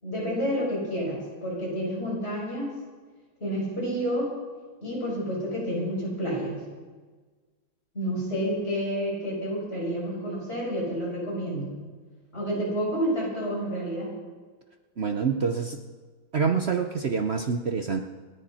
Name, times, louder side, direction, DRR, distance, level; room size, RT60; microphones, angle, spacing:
voice 1, 0.0-2.8 3.4-4.3 4.8-6.6 7.9-11.8 12.3-14.1, equal, 30° left, -5 dB, 6.9 m, -29 dB
voice 2, 15.0-15.8 16.3-18.0, right 5 dB, 65° right, 5 dB, 0.6 m, -26 dB
28.0 x 10.5 x 4.3 m, 1.4 s
omnidirectional pair, 2.2 m